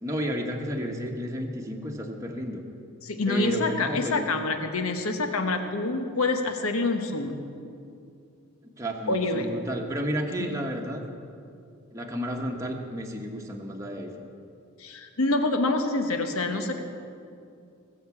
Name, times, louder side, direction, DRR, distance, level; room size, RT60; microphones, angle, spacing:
voice 1, 0.0-2.6 3.3-4.3 8.8-11.0 11.9-14.2, equal, 15° right, 0 dB, 1.1 m, -32 dB
voice 2, 3.0-7.4 9.1-9.5 10.4-10.6 14.8-16.8, left 2 dB, 80° left, 6 dB, 1.2 m, -26 dB
20.5 x 7.3 x 7.1 m, 2.5 s
head